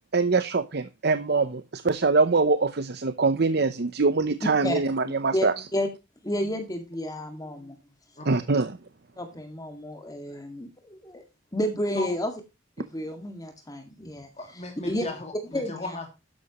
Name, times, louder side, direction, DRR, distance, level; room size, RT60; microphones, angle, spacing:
voice 1, 0.1-5.5 8.3-8.7, right 3 dB, 55° right, 12 dB, 0.8 m, -23 dB
voice 2, 4.4-4.8 5.3-5.5 5.7-5.9 6.2-7.8 8.5-8.6 9.2-11.2 11.5-12.3 12.8-14.3 14.8-15.1 15.5-16.0, equal, 20° left, 5 dB, 2.0 m, -31 dB
voice 3, 8.2-8.5 11.9-12.2 14.4-16.1, left 2 dB, 35° left, 3 dB, 2.6 m, -36 dB
12.5 x 10.5 x 3.0 m, 0.26 s
head